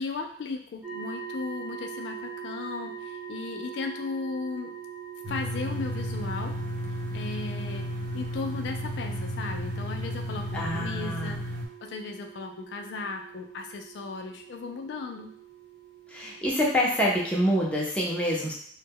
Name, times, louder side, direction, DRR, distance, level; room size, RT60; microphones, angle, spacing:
voice 1, 0.0-4.7 5.3-6.5 7.1-7.9 8.1-11.5 11.8-15.3, left 4 dB, 75° left, 4 dB, 0.3 m, -36 dB
sound 1, 0.8-17.7, right 7 dB, 30° right, 0.9 m, -43 dB
sound 2, 5.2-11.7, equal, 50° right, 0.5 m, -33 dB
voice 2, 10.5-11.3 16.1-18.5, equal, 5° left, -5 dB, 0.5 m, -26 dB
2.1 x 2.0 x 3.5 m, 0.62 s
head